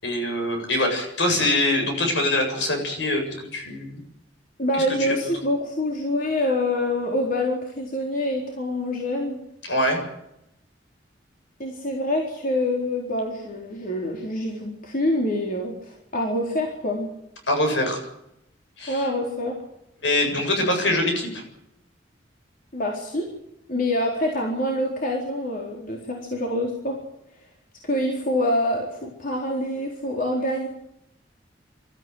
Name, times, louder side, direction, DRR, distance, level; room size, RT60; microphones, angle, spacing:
voice 1, 0.0-3.3 3.5-4.0 5.0-5.2 9.7-10.0 17.5-18.0 18.8-19.0 20.0-21.4, left 1 dB, 75° left, 4 dB, 7.6 m, -23 dB
voice 2, 4.6-9.4 11.6-17.1 18.9-19.6 22.7-23.3 23.7-27.0 27.8-30.7, left 1 dB, 50° left, 0 dB, 4.1 m, -26 dB
24.0 x 14.0 x 9.4 m, 0.82 s
head